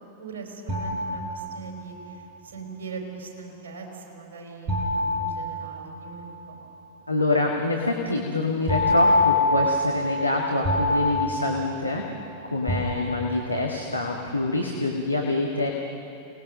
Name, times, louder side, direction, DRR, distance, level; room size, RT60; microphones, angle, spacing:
voice 1, 0.2-6.6, right 4 dB, 60° right, 1 dB, 4.3 m, -40 dB
sound 1, 0.7-1.9 4.7-6.3 8.7-12.3 12.7-13.6, left 1 dB, 35° right, 5.6 m, -25 dB
voice 2, 7.1-12.0 12.5-15.7, left 2 dB, 85° left, 0 dB, 1.7 m, -26 dB
29.0 x 19.0 x 6.7 m, 2.7 s
figure-of-eight pair, 90°, 0 cm